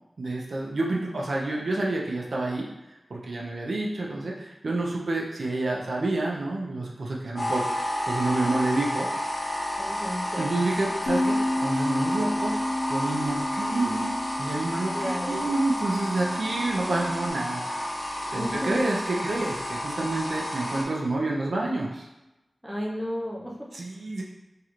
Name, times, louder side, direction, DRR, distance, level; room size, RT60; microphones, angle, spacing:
voice 1, 0.2-2.7 3.1-9.1 10.4-12.6 12.9-17.9 18.3-22.1 23.7-24.2, right 2 dB, 75° right, -2 dB, 0.5 m, -28 dB
sound 1, 7.4-20.8, equal, 50° left, 0.8 m, -31 dB
voice 2, 9.8-10.5 14.9-15.4 18.4-19.3 22.6-23.7, equal, 5° right, -3 dB, 0.5 m, -33 dB
Bass guitar, 11.1-17.3, left 1 dB, 85° left, 0.3 m, -31 dB
3.1 x 2.5 x 2.9 m, 0.97 s
wide cardioid pair, 80°, 0 cm